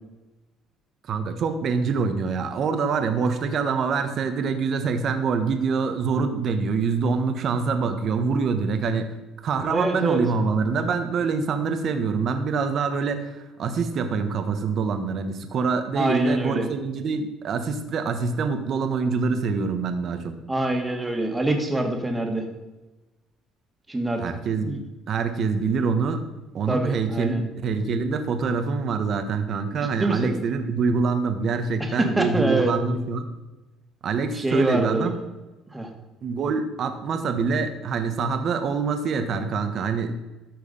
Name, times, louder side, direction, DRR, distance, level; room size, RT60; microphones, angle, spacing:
voice 1, 1.1-9.1 9.4-20.3 24.2-24.8 25.1-26.2 26.5-33.3 34.0-35.1 36.2-40.1, right 5 dB, 55° right, 8 dB, 1.2 m, -25 dB
voice 2, 9.7-10.2 16.0-16.7 20.5-22.5 23.9-24.2 24.6-24.8 26.7-27.4 30.0-30.3 31.8-32.8 34.3-35.1 35.7-35.9, right 1 dB, 10° right, 3 dB, 1.9 m, -25 dB
13.5 x 4.8 x 5.4 m, 1.1 s
cardioid pair, 105°, 0 cm